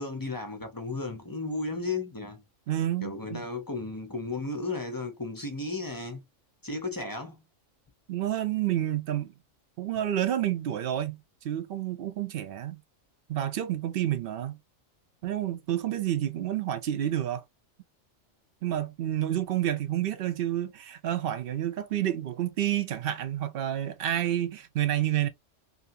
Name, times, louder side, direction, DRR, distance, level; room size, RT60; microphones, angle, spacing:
voice 1, 0.0-2.4 3.0-6.2 6.6-7.5, left 3 dB, 30° left, 0.4 m, -34 dB
voice 2, 2.7-3.4 8.1-9.3 9.8-12.8 13.3-14.6 15.2-17.4 18.6-25.3, right 12 dB, 60° right, 0.7 m, -29 dB
2.7 x 2.6 x 2.6 m
omnidirectional pair, 1.3 m